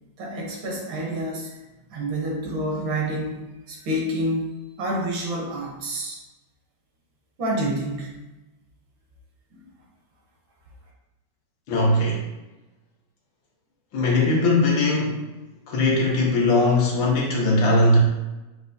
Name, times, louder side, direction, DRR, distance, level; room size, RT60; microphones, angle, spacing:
voice 1, 0.2-1.5 1.9-6.2 7.4-8.1 9.5-9.6, right 1 dB, 85° right, -1 dB, 1.7 m, -28 dB
voice 2, 11.7-12.2 13.9-15.3 15.7-18.0, left 2 dB, 80° left, -1 dB, 1.7 m, -20 dB
5.9 x 2.4 x 2.6 m, 1.0 s
omnidirectional pair, 2.1 m